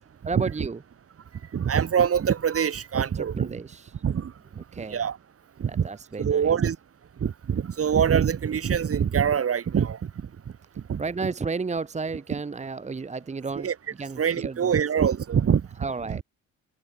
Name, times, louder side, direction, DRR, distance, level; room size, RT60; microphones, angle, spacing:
voice 1, 0.3-0.8 3.1-4.0 4.5-5.0 5.7-6.6 11.0-13.7 14.0-14.8 15.8-16.2, right 4 dB, 25° right, 1.2 m, -32 dB
voice 2, 1.5-3.5 4.0-4.3 4.9-5.2 5.6-5.9 6.2-6.8 7.2-10.1 10.9-11.0 13.6-13.7 14.2-15.6 16.1-16.2, right 8 dB, 50° right, 3.2 m, -24 dB
cardioid pair, 90°, 30 cm